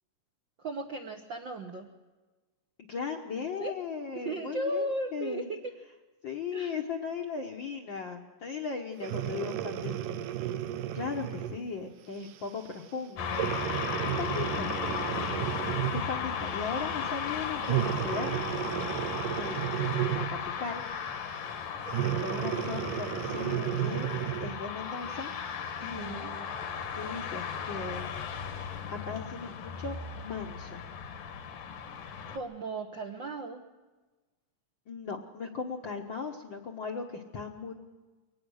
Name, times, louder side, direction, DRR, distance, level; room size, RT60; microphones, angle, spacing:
voice 1, 0.6-1.9 3.6-3.7 4.1-5.4 6.5-6.7 25.8-26.3 32.3-33.6, right 1 dB, 65° right, 3 dB, 1.2 m, -36 dB
voice 2, 2.9-5.5 6.2-10.2 10.9-13.5 14.2-14.7 16.1-18.4 18.8-19.0 19.4-20.8 22.0-24.1 24.4-25.3 25.8-26.5 26.9-28.2 28.9-30.8 34.9-37.7, left 5 dB, 60° left, 2 dB, 1.3 m, -38 dB
Breathing, 9.0-11.6 12.3-12.5 13.3-16.2 17.6-20.5 21.9-24.6 25.2-25.3, right 12 dB, 90° right, 2.5 m, -33 dB
sound 1, 13.2-32.4, left 7 dB, 80° left, 3.2 m, -36 dB
23.5 x 18.5 x 6.4 m, 1.3 s
omnidirectional pair, 3.7 m